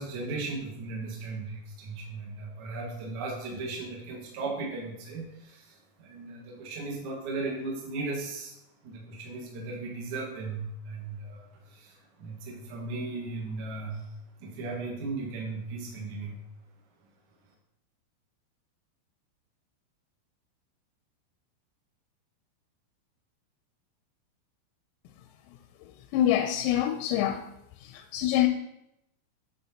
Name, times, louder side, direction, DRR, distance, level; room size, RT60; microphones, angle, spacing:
voice 1, 0.0-8.6 8.8-14.1 14.4-16.4, right 3 dB, 70° right, 1.8 m, -37 dB
voice 2, 25.5-27.5 27.8-28.5, left 12 dB, 85° left, 3.3 m, -27 dB
12.0 x 4.4 x 4.3 m
omnidirectional pair, 6.0 m